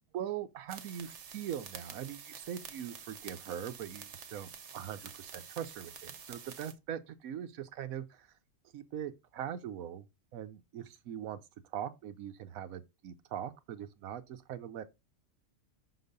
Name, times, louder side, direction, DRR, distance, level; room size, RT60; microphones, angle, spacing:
voice 1, 0.0-8.3 8.7-10.1 10.3-11.4 11.7-14.9, right 9 dB, 85° right, 1.2 m, -41 dB
sound 1, 0.7-6.7, right 7 dB, 60° right, 1.1 m, -48 dB
5.9 x 4.0 x 5.2 m
omnidirectional pair, 1.4 m